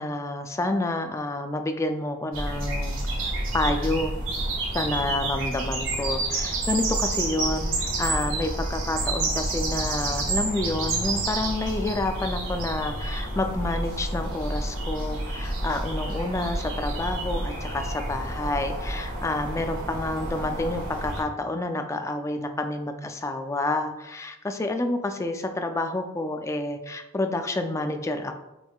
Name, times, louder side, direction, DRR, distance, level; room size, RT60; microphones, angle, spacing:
voice 1, 0.0-3.0 3.5-4.1 4.7-7.7 8.0-28.4, left 2 dB, 15° left, 6 dB, 0.3 m, -29 dB
sound 1, 2.3-21.2, right 2 dB, 90° right, 1.4 m, -29 dB
5.9 x 3.6 x 2.3 m, 0.93 s
head